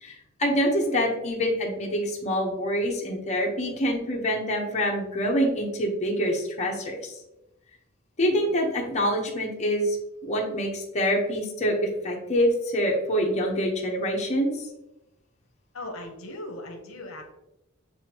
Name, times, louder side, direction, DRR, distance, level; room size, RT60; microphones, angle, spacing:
voice 1, 0.0-7.2 8.2-10.0 10.2-14.7, equal, 35° left, -2 dB, 0.8 m, -26 dB
voice 2, 15.7-17.3, left 1 dB, 70° left, 3 dB, 0.8 m, -38 dB
7.1 x 2.6 x 2.8 m, 0.90 s
head